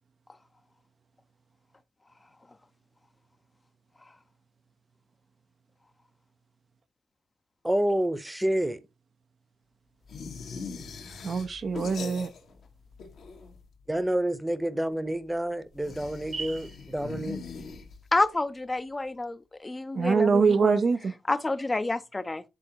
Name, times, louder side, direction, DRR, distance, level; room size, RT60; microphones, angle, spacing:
voice 1, 7.6-8.8 13.9-17.4, right 1 dB, 10° right, 0.8 m, -28 dB
sound 1, 10.1-12.7 12.9-13.8 15.7-18.3, left 4 dB, 70° left, 1.3 m, -41 dB
voice 2, 11.2-12.3 16.3-16.6 19.9-21.1, right 5 dB, 55° right, 0.6 m, -24 dB
voice 3, 18.1-20.8 21.3-22.4, left 2 dB, 25° left, 0.6 m, -29 dB
10.0 x 3.7 x 2.9 m
supercardioid pair, 60°, 0 cm